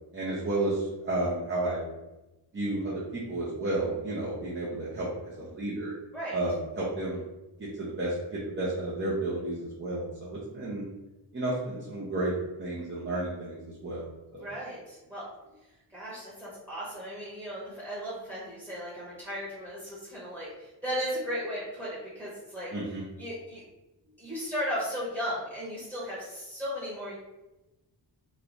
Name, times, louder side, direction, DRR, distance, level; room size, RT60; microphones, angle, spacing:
voice 1, 0.1-1.8 2.5-5.9 6.3-7.2 7.6-10.8 11.3-14.0 14.3-14.5 22.7-23.0, right 2 dB, 30° right, -7 dB, 0.7 m, -32 dB
voice 2, 14.4-15.2 15.9-22.7 23.2-23.6 24.2-27.2, equal, 5° right, -8 dB, 1.1 m, -36 dB
3.1 x 2.3 x 3.9 m, 1.0 s
wide cardioid pair, 150°, 43 cm